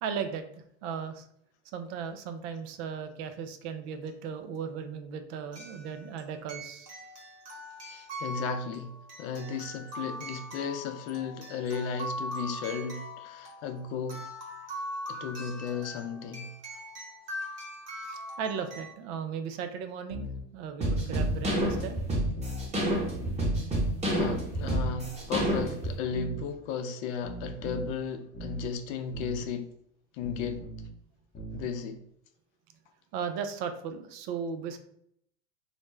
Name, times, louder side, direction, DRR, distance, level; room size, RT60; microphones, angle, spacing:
voice 1, 0.0-0.4 0.8-1.2 1.7-6.9 18.0-20.3 20.5-22.0 33.1-34.8, right 6 dB, 60° right, 8 dB, 0.5 m, -36 dB
sound 1, 4.1-4.2 5.5-18.9, equal, 40° right, 1.3 m, -41 dB
voice 2, 7.8-14.2 15.1-16.5 24.0-29.7 30.1-30.6 31.5-32.0, left 6 dB, 70° left, 7 dB, 0.5 m, -35 dB
sound 2, 20.1-20.4 21.2-21.9 22.4-22.7 23.1-23.4 24.2-24.9 25.3-25.7 26.1-26.4 27.2-27.9 28.3-28.7 29.1-29.4 30.2-30.9 31.3-31.7, equal, 25° left, 0.8 m, -39 dB
sound 3, 20.8-25.9, right 1 dB, 20° right, 1.0 m, -28 dB
2.5 x 2.1 x 3.1 m, 0.70 s
supercardioid pair, 110°, 36 cm